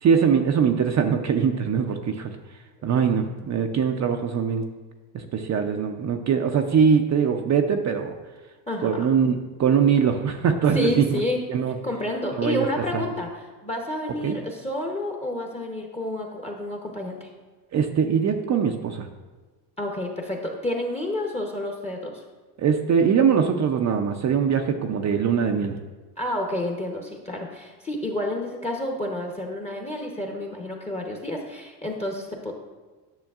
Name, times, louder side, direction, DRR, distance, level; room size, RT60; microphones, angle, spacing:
voice 1, 0.0-2.4 2.8-4.6 5.1-8.1 8.8-11.2 11.5-11.8 12.4-12.7 12.9-13.0 14.2-14.4 17.7-19.1 22.6-25.8, right 7 dB, 35° right, 5 dB, 0.5 m, -22 dB
voice 2, 8.7-9.1 10.7-11.4 11.8-17.3 19.8-22.2 26.2-32.5, left 1 dB, 15° left, 1 dB, 0.8 m, -30 dB
10.5 x 6.3 x 2.4 m, 1.3 s
cardioid pair, 105°, 49 cm